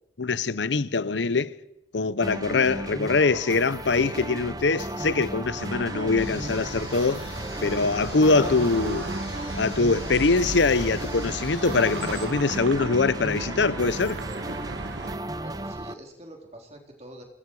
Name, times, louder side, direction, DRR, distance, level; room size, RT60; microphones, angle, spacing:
voice 1, 0.2-1.5 1.9-7.3 7.6-9.1 9.6-14.2, left 3 dB, 90° left, 0.8 m, -23 dB
sound 1, 2.2-15.9, right 1 dB, 20° right, 0.8 m, -35 dB
sound 2, 5.5-15.2, right 2 dB, 80° right, 1.6 m, -35 dB
sound 3, 6.2-12.3, left 5 dB, 35° left, 5.7 m, -46 dB
voice 2, 15.3-17.2, right 1 dB, 35° right, 4.1 m, -45 dB
27.0 x 22.5 x 4.8 m
head